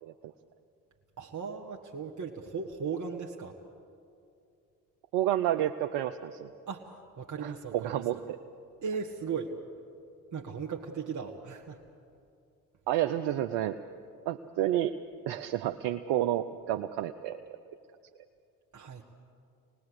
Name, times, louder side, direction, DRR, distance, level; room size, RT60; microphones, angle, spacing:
voice 1, 0.0-0.3 5.1-6.5 7.4-8.4 12.9-13.8 14.3-14.9 15.3-17.4, right 12 dB, 70° right, 8 dB, 0.8 m, -30 dB
voice 2, 1.2-3.6 6.7-8.2 8.8-9.5 10.3-11.8 18.7-19.0, right 5 dB, 45° right, 1 dB, 1.7 m, -37 dB
26.0 x 19.5 x 8.1 m, 2.5 s
hypercardioid pair, 50°, 41 cm